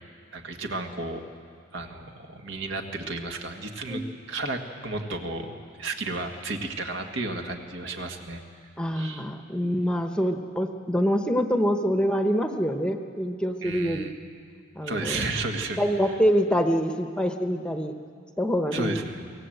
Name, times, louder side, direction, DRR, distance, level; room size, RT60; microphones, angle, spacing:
voice 1, 0.3-1.2 1.7-4.0 4.3-5.5 5.8-8.4 8.9-9.2 13.6-14.1 14.8-15.8 18.7-19.3, right 2 dB, 70° right, 4 dB, 1.8 m, -32 dB
voice 2, 8.8-14.1 14.8-15.2 15.8-17.9 18.4-19.0, equal, 5° left, 5 dB, 0.9 m, -25 dB
24.5 x 17.5 x 7.9 m, 2.2 s
head